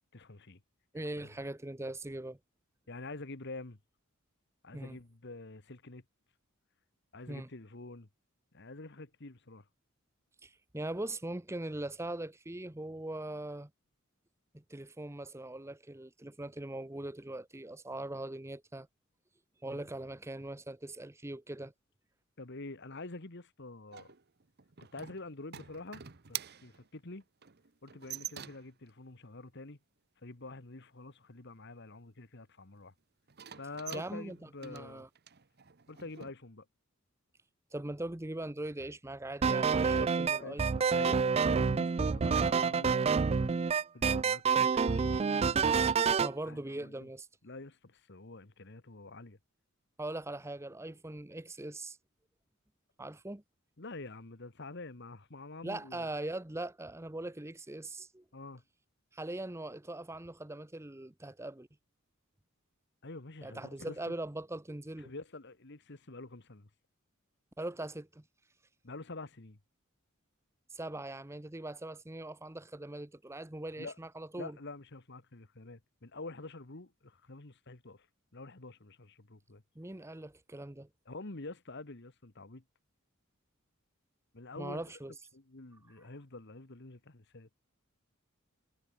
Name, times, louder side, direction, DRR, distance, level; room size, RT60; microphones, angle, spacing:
voice 1, 0.1-0.6 1.2-1.3 2.9-3.8 4.6-6.0 7.1-8.1 8.5-9.6 19.6-19.8 22.4-24.1 24.8-27.2 27.8-29.8 30.2-32.9 33.5-35.1 35.9-36.7 40.3-43.6 43.9-44.4 44.7-45.9 46.4-47.1 47.4-49.4 53.8-56.1 58.3-58.6 63.0-64.0 65.0-66.7 68.8-69.6 73.8-74.0 74.4-78.1 78.3-79.6 81.0-82.6 84.3-84.8 85.3-87.5, left 2 dB, 55° left, 1.6 m, -47 dB
voice 2, 0.9-2.4 4.7-5.0 7.3-7.5 10.4-13.7 14.5-18.9 19.6-21.7 33.9-35.1 37.7-40.6 46.2-47.3 50.0-52.0 53.0-53.4 55.6-58.2 59.1-61.7 63.4-65.1 67.6-68.2 70.7-74.6 79.8-80.9 84.6-85.1, right 1 dB, 15° right, 0.8 m, -41 dB
sound 1, 23.9-28.9 33.3-36.3, right 11 dB, 50° right, 1.0 m, -46 dB
sound 2, 39.4-46.3, right 5 dB, 30° right, 0.3 m, -28 dB
head